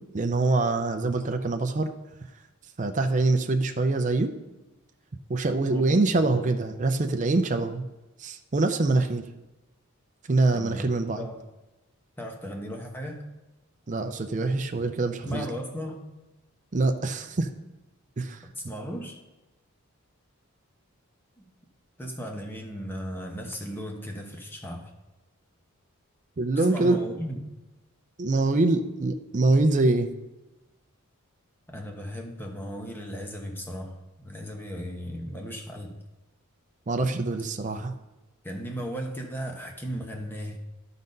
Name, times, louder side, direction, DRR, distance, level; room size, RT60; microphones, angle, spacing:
voice 1, 0.1-1.9 2.8-4.3 5.3-7.9 8.2-9.2 10.3-11.3 13.9-15.4 16.7-17.5 18.2-18.4 26.4-27.0 28.2-30.1 36.9-37.9, right 2 dB, 35° right, 6 dB, 0.5 m, -24 dB
voice 2, 5.7-6.5 10.5-11.4 12.2-13.3 15.2-16.0 18.4-19.2 21.4-21.5 22.0-24.9 26.6-27.4 31.7-35.9 38.4-40.6, equal, 10° left, 1 dB, 1.0 m, -36 dB
12.0 x 4.0 x 5.3 m, 1.0 s
head